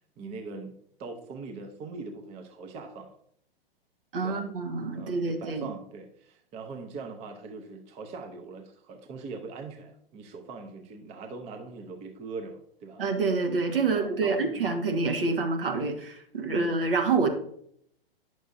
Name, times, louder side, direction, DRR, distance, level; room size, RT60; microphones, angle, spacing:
voice 1, 0.2-0.7 1.0-3.2 4.2-4.4 4.9-13.0 13.9-14.7 15.3-15.5 16.5-16.7, right 4 dB, 20° right, 4 dB, 0.7 m, -41 dB
voice 2, 4.1-5.7 13.0-17.3, right 4 dB, 65° right, 3 dB, 1.5 m, -27 dB
10.0 x 6.2 x 2.6 m, 0.68 s
figure-of-eight pair, 110°, 30 cm